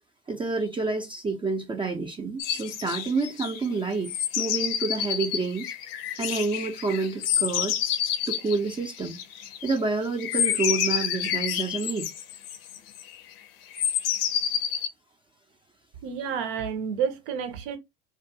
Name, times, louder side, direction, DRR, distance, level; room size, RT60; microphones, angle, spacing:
voice 1, 0.3-5.8 6.2-7.8 8.3-9.2 9.6-12.1, right 3 dB, 15° right, 0.4 m, -28 dB
sound 1, 2.4-3.6 4.0-9.8 10.2-13.1 13.7-14.9, left 9 dB, 75° left, 0.5 m, -29 dB
voice 2, 16.0-17.8, right 7 dB, 70° right, 0.7 m, -30 dB
2.4 x 2.2 x 2.6 m
hypercardioid pair, 85°, 29 cm